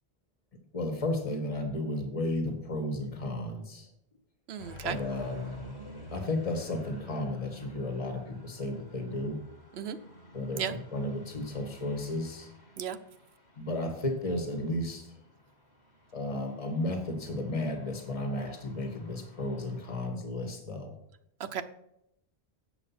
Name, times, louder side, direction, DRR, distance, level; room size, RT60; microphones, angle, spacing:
voice 1, 0.7-3.9 4.8-5.6 6.1-9.4 10.3-12.5 13.6-15.1 16.1-20.9, left 1 dB, 35° left, 5 dB, 1.6 m, -33 dB
voice 2, 4.5-5.0 9.7-10.0 10.6-10.7 12.8-13.0 21.4-21.6, right 8 dB, 75° right, 11 dB, 1.0 m, -34 dB
sound 1, 4.6-20.1, left 1 dB, 90° left, 2.3 m, -52 dB
8.1 x 7.0 x 5.8 m, 0.79 s
omnidirectional pair, 1.1 m